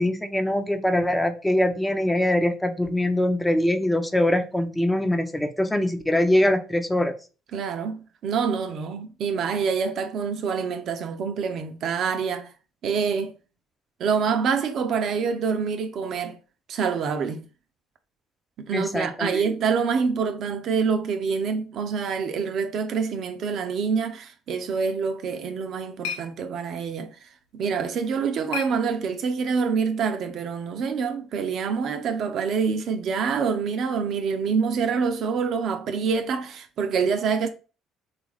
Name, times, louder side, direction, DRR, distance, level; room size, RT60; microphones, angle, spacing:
voice 1, 0.0-7.1 18.7-19.4, left 1 dB, 10° left, 0.5 m, -23 dB
voice 2, 7.5-12.5 12.8-13.3 14.0-16.4 16.7-17.5 18.6-27.1 27.5-37.5, right 6 dB, 55° right, 0.4 m, -26 dB
sound 1, 25.3-29.5, left 7 dB, 75° left, 0.5 m, -40 dB
3.3 x 2.4 x 3.2 m
hypercardioid pair, 55°, 0 cm